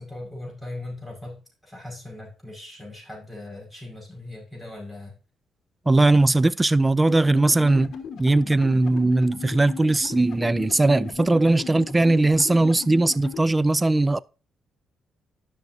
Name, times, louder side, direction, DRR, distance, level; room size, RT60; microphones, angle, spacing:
voice 1, 0.0-5.1, left 2 dB, ahead, 5.2 m, -39 dB
voice 2, 5.9-7.9 8.2-14.2, right 2 dB, 20° right, 0.4 m, -19 dB
sound 1, 7.1-13.4, left 6 dB, 60° left, 1.2 m, -37 dB
13.0 x 6.1 x 2.7 m
cardioid pair, 90°, 0 cm